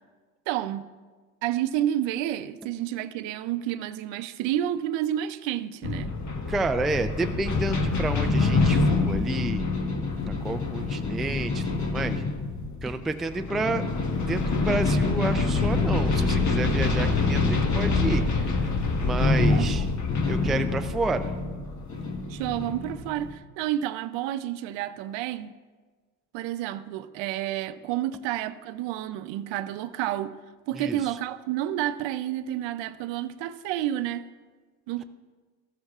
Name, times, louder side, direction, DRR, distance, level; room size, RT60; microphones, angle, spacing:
voice 1, 0.5-0.8 1.4-6.1 19.5-19.9 22.3-25.5 26.3-30.3 30.7-34.2 34.9-35.0, right 12 dB, 70° right, 0.7 m, -30 dB
sound 1, 5.8-23.3, left 3 dB, 35° left, 1.3 m, -26 dB
voice 2, 6.5-9.6 10.2-12.2 12.8-13.9 14.2-18.6 19.0-19.9 20.2-21.3 30.7-31.2, right 2 dB, ahead, 0.3 m, -30 dB
14.5 x 13.0 x 2.4 m
supercardioid pair, 80°, 47 cm